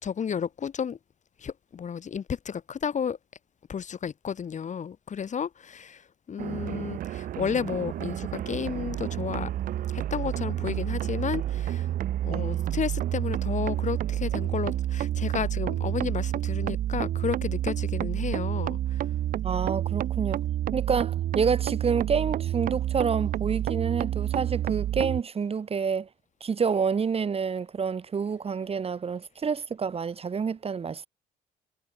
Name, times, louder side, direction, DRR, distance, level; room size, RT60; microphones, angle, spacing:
voice 1, 0.0-1.0 1.4-3.2 3.7-9.5 9.9-11.9 12.2-19.1, left 7 dB, 45° left, 1.3 m, -32 dB
sound 1, 6.4-25.2, right 12 dB, 55° right, 0.4 m, -29 dB
voice 2, 12.3-12.8 19.4-20.4 20.7-26.1 26.4-31.1, right 6 dB, 35° right, 0.9 m, -28 dB
cardioid pair, 80°, 17 cm